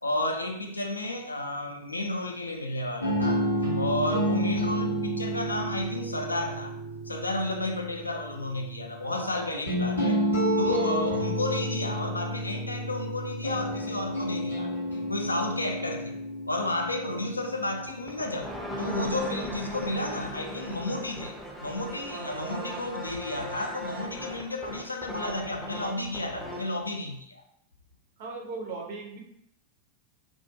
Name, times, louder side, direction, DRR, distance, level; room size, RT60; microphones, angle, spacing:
voice 1, 0.0-3.4 3.7-6.7 7.1-10.2 10.6-14.7 15.1-16.2 16.5-27.4, left 1 dB, 80° left, 3 dB, 0.3 m, -32 dB
sound 1, 3.0-19.1, equal, 90° right, 0.8 m, -31 dB
voice 2, 9.1-9.8 10.7-11.2 17.0-17.2 19.2-19.4 22.1-22.8 28.2-29.2, right 3 dB, 50° right, 0 dB, 0.5 m, -40 dB
sound 2, 17.9-26.7, equal, ahead, 0.4 m, -38 dB
2.3 x 2.2 x 2.7 m, 0.76 s
figure-of-eight pair, 90°, 0 cm